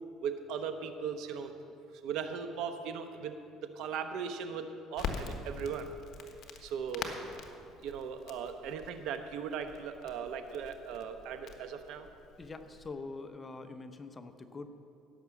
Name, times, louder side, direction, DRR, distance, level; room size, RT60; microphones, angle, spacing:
voice 1, 0.2-1.5 2.0-5.9 6.6-7.1 7.8-12.1, right 6 dB, 70° right, 8 dB, 0.9 m, -38 dB
Crackle, 4.9-12.9, left 5 dB, 55° left, 1.2 m, -44 dB
voice 2, 12.4-14.7, left 3 dB, 20° left, 8 dB, 0.7 m, -44 dB
16.0 x 6.1 x 7.1 m, 2.5 s
cardioid pair, 120°, 0 cm